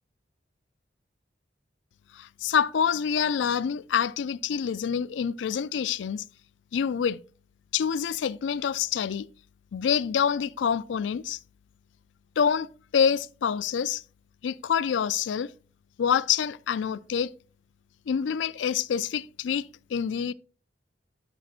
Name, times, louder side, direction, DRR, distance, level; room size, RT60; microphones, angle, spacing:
voice 1, 2.1-6.2 6.7-7.2 7.7-9.3 9.7-11.4 12.4-12.7 12.9-14.0 14.4-15.5 16.0-17.3 18.1-20.3, left 7 dB, 90° left, 0.4 m, -26 dB
10.0 x 7.3 x 2.4 m
head